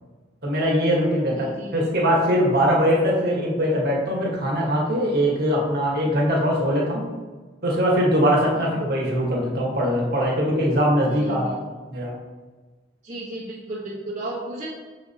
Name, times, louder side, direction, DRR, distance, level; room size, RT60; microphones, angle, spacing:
voice 1, 0.4-7.1 7.6-12.1, equal, 55° right, -3 dB, 1.7 m, -22 dB
voice 2, 1.3-1.9 8.5-8.9 11.0-11.5 13.0-14.7, right 1 dB, 35° right, -8 dB, 1.4 m, -34 dB
6.5 x 6.5 x 3.0 m, 1.3 s
head